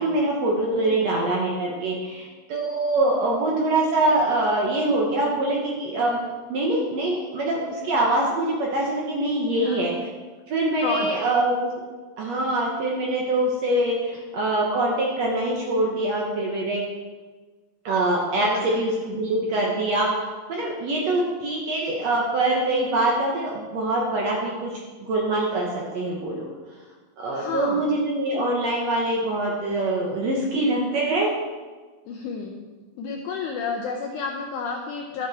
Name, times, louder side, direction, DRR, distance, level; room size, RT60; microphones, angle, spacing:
voice 1, 0.0-6.2 6.5-10.1 10.5-11.7 12.2-16.8 17.8-26.5 27.2-31.3, right 2 dB, 65° right, -2 dB, 1.7 m, -24 dB
voice 2, 0.6-1.2 9.5-9.9 10.8-11.2 18.4-18.8 27.3-27.9 32.1-32.7 33.0-35.3, left 5 dB, 90° left, 2 dB, 1.7 m, -31 dB
11.5 x 5.9 x 4.6 m, 1.3 s
omnidirectional pair, 4.3 m